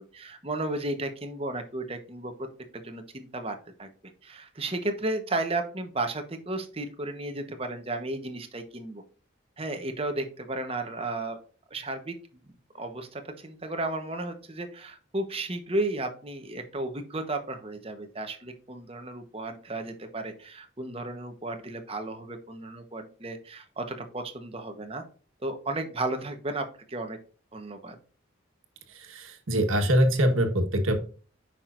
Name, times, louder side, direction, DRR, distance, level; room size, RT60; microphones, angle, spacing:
voice 1, 0.0-2.5 2.7-3.9 4.2-9.0 9.6-11.4 11.7-12.2 12.7-25.0 25.4-27.2 27.5-27.9, right 2 dB, 30° right, 6 dB, 1.1 m, -34 dB
voice 2, 29.1-31.0, equal, 85° right, 5 dB, 1.4 m, -23 dB
8.9 x 6.0 x 2.6 m, 0.39 s
head